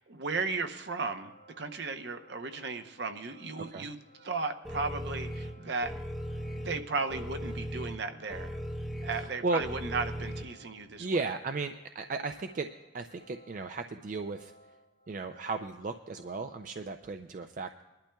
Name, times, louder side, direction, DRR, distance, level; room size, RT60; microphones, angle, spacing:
voice 1, 0.0-1.3 1.6-5.9 6.6-8.6 9.0-11.1, right 4 dB, 65° right, 7 dB, 0.7 m, -35 dB
sound 1, 0.8-16.9, equal, 80° left, 2.0 m, -60 dB
sound 2, 4.7-10.4, equal, ahead, 0.7 m, -38 dB
voice 2, 9.1-9.6 11.0-14.5 15.1-17.8, right 3 dB, 45° right, 7 dB, 0.4 m, -35 dB
22.0 x 11.5 x 2.3 m, 1.1 s
head